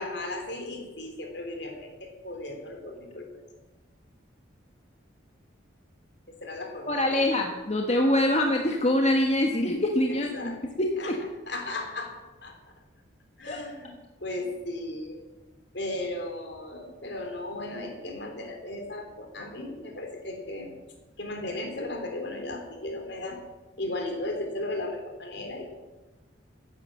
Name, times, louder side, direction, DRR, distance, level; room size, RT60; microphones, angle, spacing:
voice 1, 0.0-3.4 6.3-7.3 10.1-10.6 11.0-11.2 11.5-12.6 13.4-13.9 14.2-15.2 15.7-20.7 21.2-23.4 23.8-25.7, left 2 dB, 60° left, 4 dB, 3.2 m, -36 dB
voice 2, 6.9-11.2 13.5-13.6, left 1 dB, 35° left, 2 dB, 1.3 m, -25 dB
14.5 x 10.0 x 7.5 m, 1.1 s
head